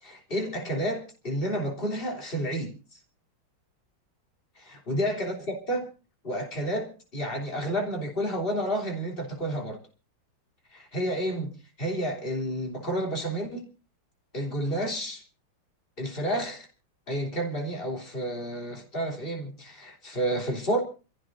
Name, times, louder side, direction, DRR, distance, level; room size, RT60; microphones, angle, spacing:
voice 1, 0.0-2.7 4.7-5.9 6.2-9.8 10.7-11.5 11.8-13.7 14.3-15.2 16.0-16.7 17.1-20.8, right 1 dB, 25° left, 3.5 m, -30 dB
27.5 x 15.5 x 2.7 m
omnidirectional pair, 2.3 m